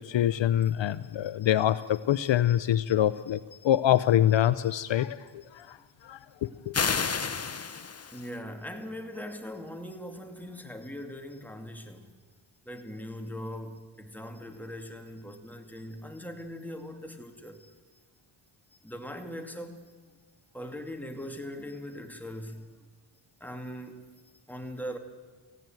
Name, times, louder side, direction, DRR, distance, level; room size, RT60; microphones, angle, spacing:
voice 1, 0.1-3.4 3.6-5.2 5.5-5.8 6.0-6.7, left 11 dB, 65° left, 15 dB, 0.7 m, -25 dB
voice 2, 0.9-1.3 3.6-3.7 5.5-5.7 6.1-6.2 8.1-12.1 12.6-17.7 18.8-19.9 20.5-22.8 23.4-24.0 24.5-25.0, equal, 5° left, 4 dB, 2.5 m, -41 dB
sound 1, 6.7-8.3, left 5 dB, 30° left, 1.1 m, -30 dB
18.5 x 15.5 x 9.2 m, 1.5 s
cardioid pair, 85°, 49 cm